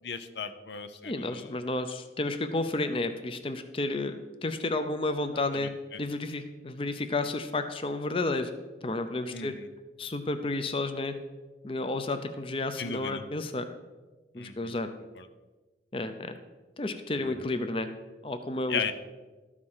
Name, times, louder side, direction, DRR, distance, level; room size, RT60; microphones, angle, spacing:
voice 1, 0.0-1.6 5.3-6.0 9.3-9.7 12.8-13.2 14.4-14.7 15.2-15.3 17.2-17.3 18.7-18.9, left 5 dB, 80° left, 10 dB, 0.7 m, -36 dB
voice 2, 1.0-4.1 4.4-5.7 6.0-8.5 8.8-9.5 10.0-11.1 11.6-13.7 14.3-14.9 15.9-16.4 16.8-17.9 18.2-18.9, left 2 dB, 30° left, 8 dB, 0.5 m, -31 dB
13.0 x 4.9 x 5.5 m, 1.2 s
head